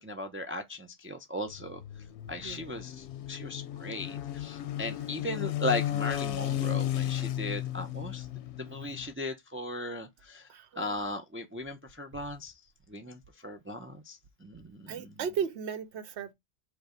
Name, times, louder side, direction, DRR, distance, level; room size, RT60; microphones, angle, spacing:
voice 1, 0.0-1.8 2.3-8.3 8.6-10.5 10.8-12.5 12.9-15.1, left 1 dB, 20° right, 0.3 m, -37 dB
sound 1, 1.5-9.1, left 12 dB, 85° left, 0.9 m, -34 dB
voice 2, 10.5-11.1 14.9-16.3, right 7 dB, 85° right, 0.9 m, -36 dB
5.0 x 2.2 x 4.9 m
omnidirectional pair, 1.1 m